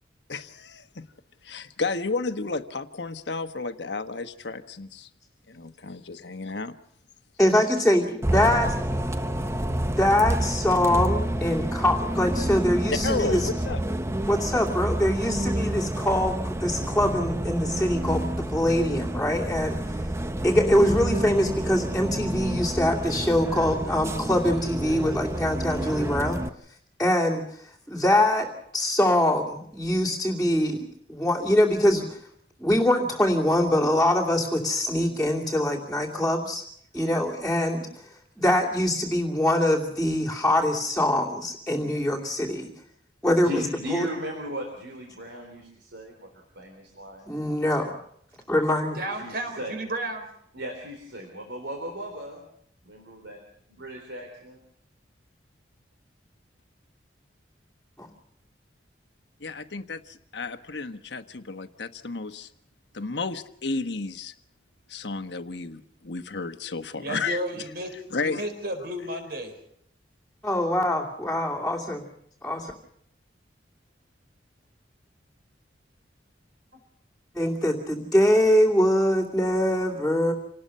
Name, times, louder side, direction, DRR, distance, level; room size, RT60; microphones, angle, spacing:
voice 1, 0.3-1.1 1.4-5.1 5.5-6.7 13.0-13.8 59.4-62.5 62.9-64.3 64.9-67.4 68.1-68.4, left 3 dB, 70° left, 8 dB, 1.3 m, -32 dB
voice 2, 7.4-8.7 9.8-13.5 14.3-19.8 20.4-26.4 27.0-27.4 27.9-32.2 32.6-36.6 36.9-37.9 38.4-42.7 43.2-44.1 47.3-48.0 48.5-49.0 58.0-58.1 70.4-72.0 72.4-72.7 77.3-80.3, left 1 dB, ahead, -7 dB, 2.6 m, -23 dB
Bus, 8.2-26.5, right 1 dB, 15° right, 0.8 m, -29 dB
voice 3, 43.4-46.3 46.6-47.5 49.1-49.7 50.5-52.4 52.9-53.4 53.7-54.6, equal, 85° right, 2 dB, 3.9 m, -37 dB
voice 4, 48.9-50.3 67.0-67.9 68.2-69.6 76.7-76.8, right 1 dB, 60° right, 6 dB, 4.8 m, -33 dB
27.5 x 19.0 x 5.5 m, 0.69 s
head